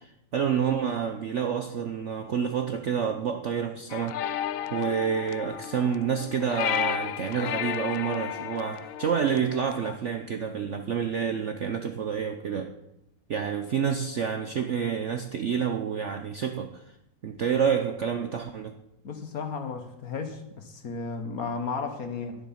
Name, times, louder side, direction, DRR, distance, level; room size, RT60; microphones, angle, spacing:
voice 1, 0.0-4.4 4.7-12.7 13.3-16.8 17.2-18.8, right 7 dB, 60° right, 7 dB, 0.8 m, -28 dB
sound 1, 3.9-9.9, left 9 dB, 75° left, 0.7 m, -33 dB
voice 2, 19.0-22.4, left 5 dB, 55° left, 7 dB, 1.6 m, -34 dB
11.5 x 10.5 x 5.7 m, 0.87 s
omnidirectional pair, 2.0 m